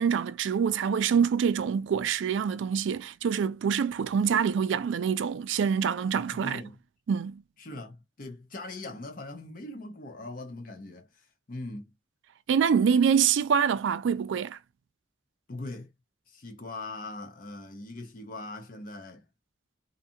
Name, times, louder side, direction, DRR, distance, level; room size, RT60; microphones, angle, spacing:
voice 1, 0.0-6.6 7.1-7.3 12.5-14.6, right 7 dB, 70° right, 0.3 m, -25 dB
voice 2, 6.1-6.8 7.6-11.9 15.5-15.9 16.3-19.2, left 2 dB, 45° left, 0.6 m, -41 dB
2.6 x 2.4 x 2.6 m
head